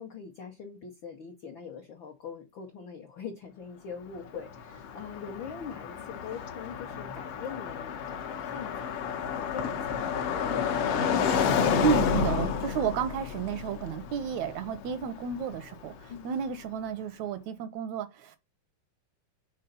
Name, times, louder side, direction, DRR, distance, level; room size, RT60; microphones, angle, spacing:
voice 1, 0.0-9.0 9.3-11.2 16.1-16.3, left 6 dB, 90° left, 1.0 m, -43 dB
Car passing by, 4.1-16.2, left 7 dB, 70° left, 1.5 m, -30 dB
voice 2, 11.8-18.4, right 7 dB, 80° right, 1.7 m, -32 dB
5.5 x 3.9 x 5.4 m
omnidirectional pair, 3.7 m